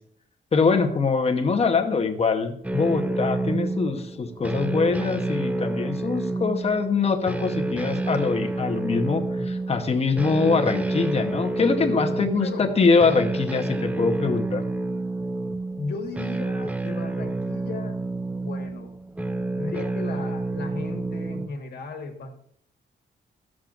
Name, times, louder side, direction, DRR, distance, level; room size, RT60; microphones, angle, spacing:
voice 1, 0.5-14.6, left 4 dB, 35° left, 5 dB, 0.9 m, -23 dB
sound 1, 2.6-21.5, right 2 dB, 5° right, 0.3 m, -29 dB
voice 2, 12.2-12.7 15.7-18.0 18.4-18.9 19.5-22.4, left 3 dB, 60° left, 3 dB, 1.5 m, -36 dB
13.0 x 7.4 x 2.5 m, 0.67 s
cardioid pair, 140°, 19 cm